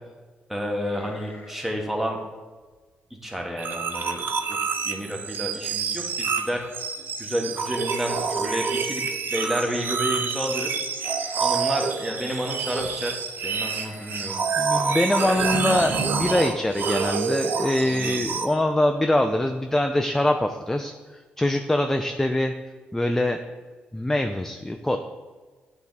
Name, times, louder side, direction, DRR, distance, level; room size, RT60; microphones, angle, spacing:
voice 1, 0.5-2.2 3.2-4.6 4.8-6.6 7.2-9.0 9.3-10.7 11.4-14.5 14.7-15.0 17.7-18.3, equal, 10° right, 1 dB, 1.2 m, -30 dB
sound 1, 0.8-2.1 2.6-2.9 3.5-3.6 3.9-4.4 4.7-4.8 5.9-6.0 6.3-6.7 9.4-10.4 11.0-11.9 13.4-14.4 15.0-15.6, left 3 dB, 65° left, 1.0 m, -48 dB
sound 2, 3.6-18.5, right 5 dB, 60° right, 0.6 m, -27 dB
voice 2, 14.6-22.5 22.9-23.4 23.9-25.0, left 1 dB, 10° left, 6 dB, 0.4 m, -23 dB
8.3 x 3.5 x 4.0 m, 1.4 s
cardioid pair, 70°, 4 cm